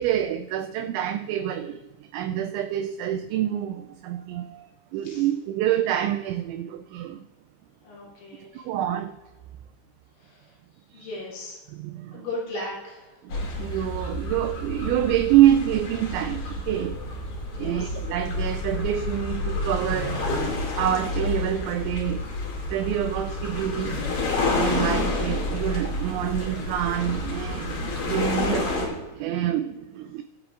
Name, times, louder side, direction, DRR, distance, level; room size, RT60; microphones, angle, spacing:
voice 1, 0.0-7.2 8.4-9.2 10.9-11.1 11.7-12.3 13.2-17.0 17.6-22.3 22.7-24.0 24.6-27.8 28.0-30.2, right 11 dB, 90° right, 2.6 m, -27 dB
voice 2, 7.8-8.7 10.2-10.5 10.9-11.6 12.1-13.1 17.5-17.9, left 2 dB, 70° left, 5.5 m, -37 dB
sound 1, 13.3-28.9, left 2 dB, 50° left, 3.7 m, -29 dB
21.5 x 8.0 x 2.5 m
omnidirectional pair, 5.8 m